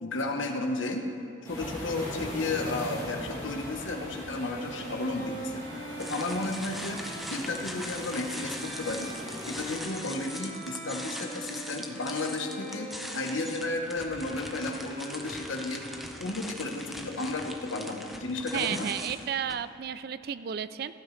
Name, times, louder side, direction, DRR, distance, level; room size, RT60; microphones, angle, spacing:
voice 1, 0.0-1.1 1.5-7.0 7.3-9.1 9.5-15.9 16.2-18.9, left 2 dB, 85° left, 3 dB, 1.1 m, -33 dB
sound 1, 1.4-9.8, equal, 15° left, 2.7 m, -41 dB
Bowed string instrument, 1.8-16.4, right 1 dB, 70° right, 3.3 m, -44 dB
sound 2, 6.0-19.5, equal, ahead, 0.7 m, -41 dB
voice 2, 18.5-20.9, right 8 dB, 50° right, 14 dB, 0.4 m, -32 dB
17.0 x 11.5 x 3.3 m, 2.6 s
head